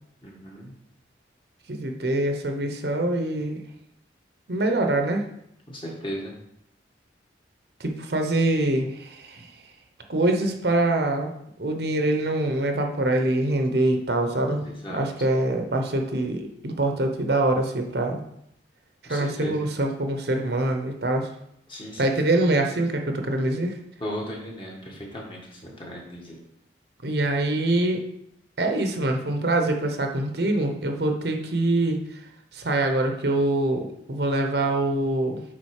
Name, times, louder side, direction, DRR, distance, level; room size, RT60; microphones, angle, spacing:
voice 1, 0.2-0.7 5.7-6.3 14.6-15.1 19.0-19.6 21.7-22.5 24.0-26.4, equal, 25° left, -2 dB, 1.6 m, -36 dB
voice 2, 1.7-3.6 4.5-5.2 7.8-9.5 10.1-11.3 11.6-14.6 14.9-18.2 19.1-21.3 22.0-23.7 27.0-28.0 28.6-32.0 32.5-35.4, right 2 dB, 60° right, 4 dB, 0.9 m, -24 dB
8.7 x 3.9 x 4.8 m, 0.75 s
head